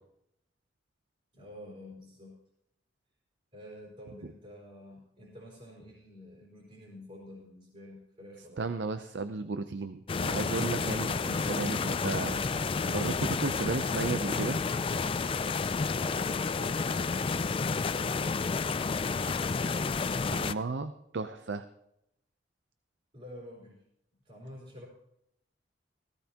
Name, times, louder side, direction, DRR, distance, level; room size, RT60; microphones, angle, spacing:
voice 1, 1.3-2.4 3.5-8.8 23.1-23.8 24.2-24.9, left 1 dB, 35° right, -4 dB, 4.2 m, -49 dB
voice 2, 8.6-12.4 12.9-14.6 20.3-21.7, right 3 dB, 80° right, 10 dB, 0.6 m, -34 dB
sound 1, 10.1-20.5, left 4 dB, 30° left, 0.4 m, -30 dB
17.0 x 16.0 x 2.9 m, 0.79 s
head